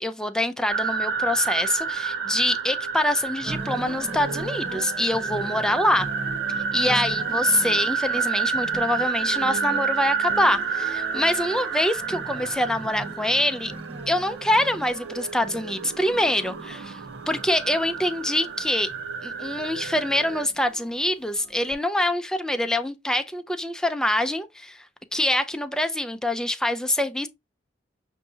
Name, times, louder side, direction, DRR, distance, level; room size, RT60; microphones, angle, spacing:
voice 1, 0.0-6.1 6.7-13.7 14.1-17.0 17.3-18.9 19.2-24.8 25.1-27.3, left 1 dB, 5° left, 0.4 m, -25 dB
sound 1, 0.7-20.5, right 5 dB, 80° right, 0.4 m, -30 dB
sound 2, 3.4-21.7, right 3 dB, 35° right, 1.1 m, -40 dB
6.6 x 2.7 x 2.7 m
head